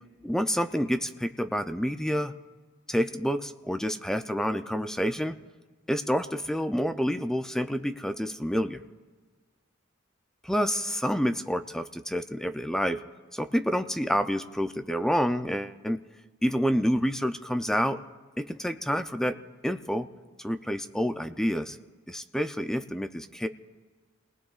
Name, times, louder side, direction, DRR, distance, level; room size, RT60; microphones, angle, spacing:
voice 1, 0.2-2.3 2.9-5.3 5.9-8.8 10.4-13.0 13.3-16.0 16.4-18.0 18.4-19.4 19.6-20.1 20.4-21.8 22.1-23.5, equal, 5° left, 8 dB, 0.5 m, -28 dB
29.5 x 19.5 x 2.4 m, 1.4 s
head